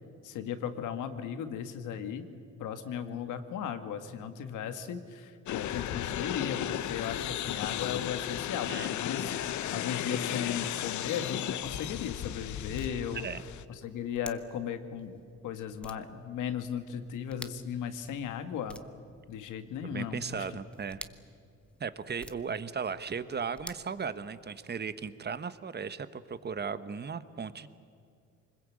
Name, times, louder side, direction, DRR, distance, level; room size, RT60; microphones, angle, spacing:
voice 1, 0.2-2.3 2.6-9.3 9.6-13.3 13.7-18.8 19.3-20.6, left 8 dB, 90° left, 9 dB, 1.9 m, -36 dB
sound 1, 5.5-13.6, left 11 dB, 70° left, 0.9 m, -35 dB
sound 2, 11.9-24.7, left 1 dB, 5° left, 1.2 m, -53 dB
voice 2, 19.8-21.0 21.8-27.7, right 6 dB, 35° right, 13 dB, 1.2 m, -36 dB
24.5 x 21.0 x 8.6 m, 2.4 s
cardioid pair, 90°, 30 cm